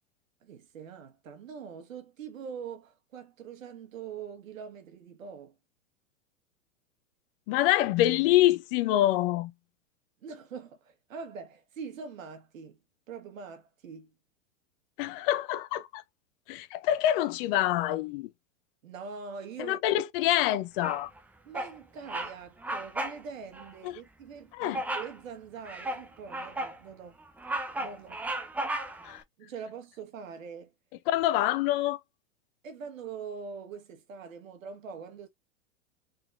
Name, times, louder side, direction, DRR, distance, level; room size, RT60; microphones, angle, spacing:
voice 1, 0.4-5.5 10.2-12.8 13.1-14.1 18.8-19.8 21.4-27.2 27.8-28.2 29.4-30.7 32.6-35.3, right 6 dB, 75° right, 1.5 m, -43 dB
voice 2, 7.5-9.5 15.0-16.0 16.5-18.3 19.6-21.1 23.8-24.0 24.5-24.8 29.0-29.2 31.1-32.0, left 14 dB, 45° left, 0.6 m, -26 dB
Bird vocalization bird call bird song, 20.8-21.2 21.5-21.8 22.1-22.3 22.6-23.2 23.5-23.7 24.7-25.2 25.7-26.8 27.2-29.1, right 1 dB, 5° right, 0.4 m, -34 dB
3.9 x 3.9 x 2.3 m
hypercardioid pair, 110°, 40 cm